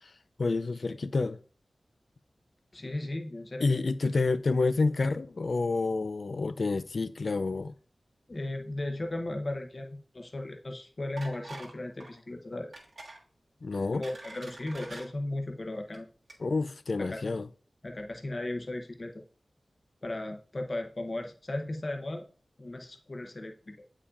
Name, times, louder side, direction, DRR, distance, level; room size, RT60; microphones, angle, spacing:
voice 1, 0.4-1.4 3.6-7.7 13.6-14.0 16.4-17.5, left 3 dB, 65° left, 0.3 m, -29 dB
voice 2, 2.7-3.8 8.3-12.7 13.9-16.1 17.0-17.3 17.8-19.1 20.0-22.3 22.6-23.8, left 1 dB, 40° left, 0.8 m, -36 dB
sound 1, 11.2-11.7 12.0-12.2 12.7-13.2 13.7-15.1 15.8-16.0 16.3-16.4, right 2 dB, 75° right, 1.6 m, -45 dB
8.4 x 4.8 x 2.5 m
wide cardioid pair, 100°, 0 cm